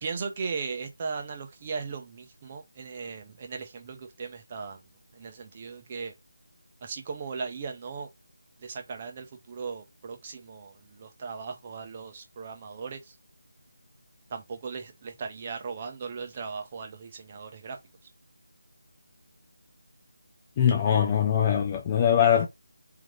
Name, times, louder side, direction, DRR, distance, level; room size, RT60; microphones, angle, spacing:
voice 1, 0.0-4.8 5.1-6.1 6.8-8.1 8.6-13.1 14.3-17.8, right 5 dB, 25° right, 0.7 m, -37 dB
voice 2, 20.6-22.5, left 9 dB, 15° left, 0.4 m, -22 dB
3.8 x 2.8 x 3.1 m
figure-of-eight pair, 175°, 0 cm